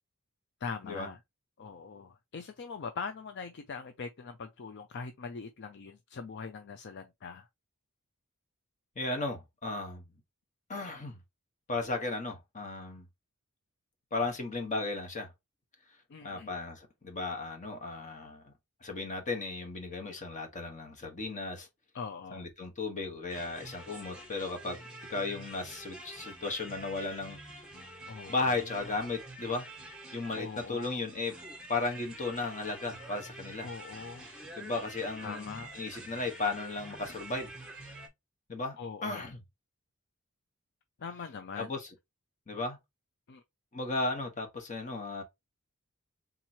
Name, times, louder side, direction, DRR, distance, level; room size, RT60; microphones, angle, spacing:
voice 1, 0.6-1.2 1.6-7.5 16.1-16.5 21.9-22.5 28.1-28.8 30.4-31.0 33.6-34.3 35.2-35.7 38.8-39.3 41.0-41.7 43.3-43.4, left 5 dB, 50° left, 0.5 m, -42 dB
voice 2, 8.9-10.0 10.7-11.2 11.7-13.1 14.1-15.3 16.2-18.5 18.8-21.7 22.3-27.4 28.3-29.7 30.1-31.3 31.7-33.7 34.6-37.5 38.5-38.8 39.0-39.4 41.6-41.9 42.5-42.8 43.7-45.2, left 3 dB, 35° left, 1.2 m, -35 dB
sound 1, 23.3-38.1, right 1 dB, 5° right, 1.3 m, -47 dB
3.7 x 3.0 x 4.3 m
head